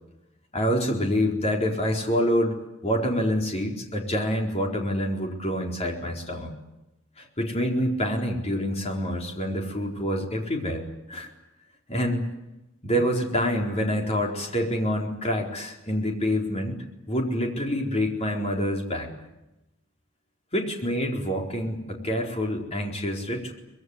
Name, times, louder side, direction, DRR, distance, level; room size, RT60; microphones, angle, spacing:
voice 1, 0.5-6.5 7.2-11.3 11.9-12.3 12.8-19.1 20.5-23.5, equal, 30° left, 1 dB, 4.3 m, -27 dB
24.0 x 21.5 x 9.8 m, 0.96 s
head